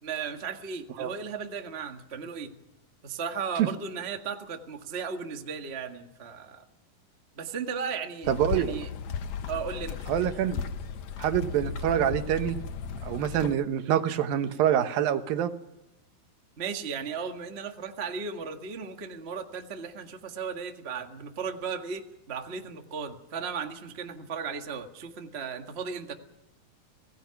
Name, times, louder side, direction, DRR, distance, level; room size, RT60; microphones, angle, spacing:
voice 1, 0.0-2.6 3.0-6.6 7.3-8.9 9.5-10.1 16.6-26.1, right 6 dB, 40° right, 4 dB, 0.9 m, -36 dB
sound 1, 8.2-13.6, left 6 dB, 65° left, 2.0 m, -35 dB
voice 2, 8.3-8.8 10.1-10.7 11.2-12.6 13.0-15.5, right 10 dB, 75° right, 9 dB, 2.8 m, -26 dB
26.0 x 18.5 x 5.9 m, 0.91 s
omnidirectional pair, 4.2 m